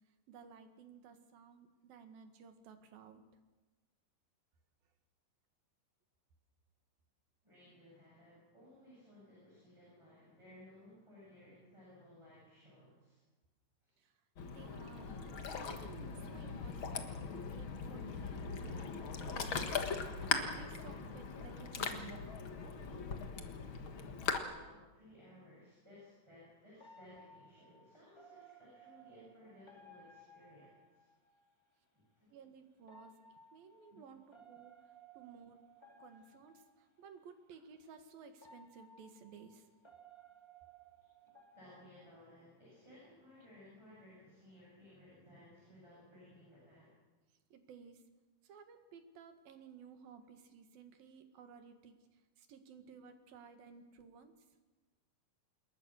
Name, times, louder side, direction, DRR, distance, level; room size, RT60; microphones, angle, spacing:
voice 1, 0.3-3.2 14.0-14.1 14.4-15.2 15.6-19.8 20.2-22.2 32.3-33.1 33.5-35.6 36.0-39.7 47.5-48.0 48.4-54.5, right 6 dB, 90° right, 7 dB, 3.6 m, -56 dB
voice 2, 7.4-13.2 13.8-14.0 21.0-21.3 24.4-31.1 31.9-32.3 33.9-34.0 36.1-36.2 41.5-47.0, left 1 dB, 5° right, -6 dB, 8.0 m, -59 dB
Ocean, 14.4-24.4, left 5 dB, 50° left, 1.8 m, -40 dB
sound 1, 25.4-25.5 26.8-31.5 32.8-37.0 37.8-37.9 38.4-42.8 43.1-43.4, right 2 dB, 10° left, 1.4 m, -61 dB
27.5 x 21.0 x 6.4 m, 1.2 s
omnidirectional pair, 4.0 m